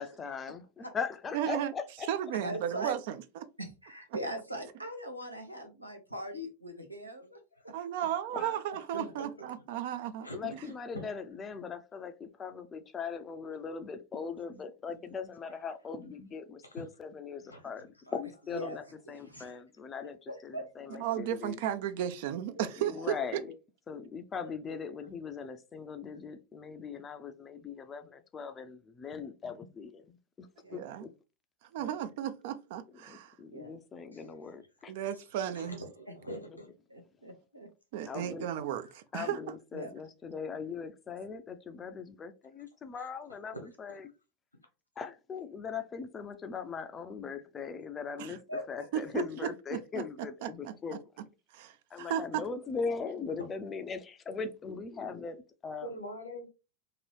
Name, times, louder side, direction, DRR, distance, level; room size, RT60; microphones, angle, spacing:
voice 1, 0.0-2.1 8.3-8.6 10.3-18.8 19.1-21.6 22.8-23.5 23.9-31.1 33.0-34.9 38.1-38.5 39.1-44.1 45.0-51.1 51.9-55.9, left 5 dB, 20° left, 0.4 m, -40 dB
voice 2, 1.3-1.7 2.1-3.5 7.7-10.6 20.9-23.2 30.7-31.1 31.7-33.3 34.9-35.8 37.9-39.5 48.2-48.4 48.9-49.2 49.7-50.0 50.4-50.7 51.5-52.4, right 10 dB, 50° right, 0.4 m, -34 dB
voice 3, 2.4-2.9 3.6-7.4 7.6-7.7 18.5-18.8 19.3-19.5 20.3-21.0 23.4-23.5 24.4-24.5 30.6-30.8 31.8-31.9 33.5-33.7 36.3-36.4 36.9-37.7 39.7-39.9 48.5-48.6, equal, 85° right, 0.8 m, -41 dB
voice 4, 8.9-9.5 10.2-10.5 10.9-11.1 17.5-17.6 19.3-19.6 34.1-34.2 35.5-36.4 55.8-56.5, right 1 dB, 85° left, 1.0 m, -43 dB
2.8 x 2.6 x 3.1 m
figure-of-eight pair, 90°, 0 cm